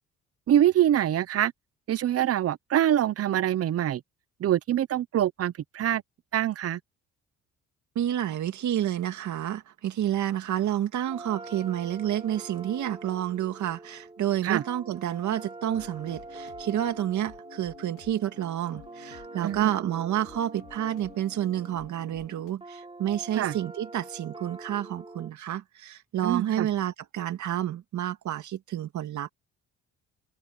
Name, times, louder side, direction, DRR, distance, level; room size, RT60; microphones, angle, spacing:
voice 1, 0.5-1.5 1.9-4.0 4.4-6.0 6.3-6.8 14.4-14.6 19.4-19.7 23.4-23.5 26.2-26.7, right 11 dB, 50° right, 0.7 m, -24 dB
voice 2, 8.0-29.3, right 11 dB, 70° right, 2.3 m, -29 dB
sound 1, 11.0-25.3, right 2 dB, 20° right, 4.7 m, -45 dB
sound 2, 15.7-22.5, left 13 dB, 90° left, 2.6 m, -52 dB
cardioid pair, 90°, 30 cm